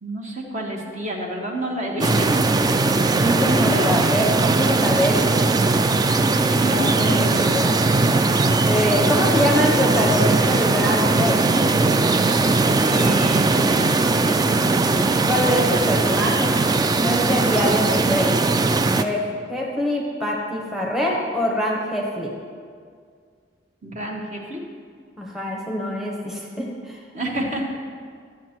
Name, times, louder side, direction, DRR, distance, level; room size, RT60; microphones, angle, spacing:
voice 1, 0.0-2.5 3.7-3.9 6.6-7.3 12.8-14.0 23.8-24.6 27.1-27.6, equal, 40° right, 0 dB, 1.3 m, -29 dB
sound 1, 2.0-19.0, right 3 dB, 20° right, 0.3 m, -19 dB
voice 2, 3.2-5.3 6.4-7.8 8.6-11.5 14.3-16.6 17.0-18.3 18.9-19.2 19.5-22.3 25.2-27.0, equal, ahead, -2 dB, 1.0 m, -24 dB
11.5 x 7.5 x 4.4 m, 2.1 s
head